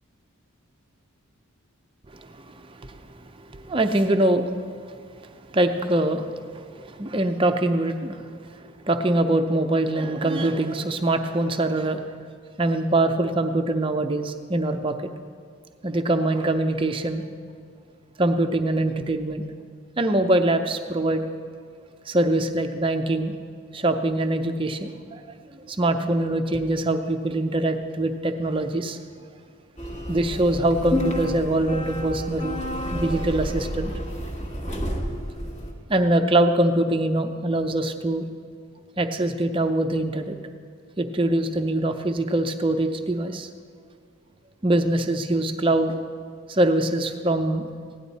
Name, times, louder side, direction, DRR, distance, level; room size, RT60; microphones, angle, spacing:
voice 1, 2.1-4.5 5.5-8.3 8.9-12.2 12.6-15.1 15.8-17.2 18.2-19.5 20.0-21.3 22.1-23.3 23.7-25.2 25.5-29.0 30.1-32.6 32.9-33.9 35.9-38.3 39.0-40.4 41.0-43.5 44.6-46.0 46.5-47.7, right 1 dB, 25° right, 6 dB, 0.5 m, -23 dB
sound 1, 29.8-35.7, equal, 30° left, 1.3 m, -30 dB
16.0 x 10.5 x 4.1 m, 2.1 s
head